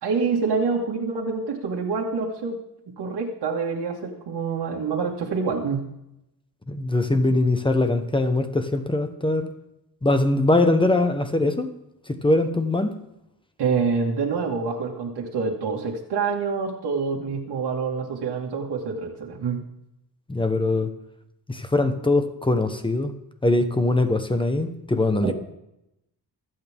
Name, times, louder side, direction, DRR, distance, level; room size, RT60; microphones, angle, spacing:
voice 1, 0.0-2.6 2.9-5.9 13.6-19.6 25.2-25.3, right 5 dB, 80° right, -2 dB, 2.2 m, -26 dB
voice 2, 6.7-9.5 10.0-11.7 12.1-12.9 20.3-20.9 21.5-23.1 23.4-25.3, left 2 dB, 10° left, 8 dB, 1.2 m, -22 dB
25.0 x 8.6 x 3.7 m, 0.84 s
wide cardioid pair, 145°, 40 cm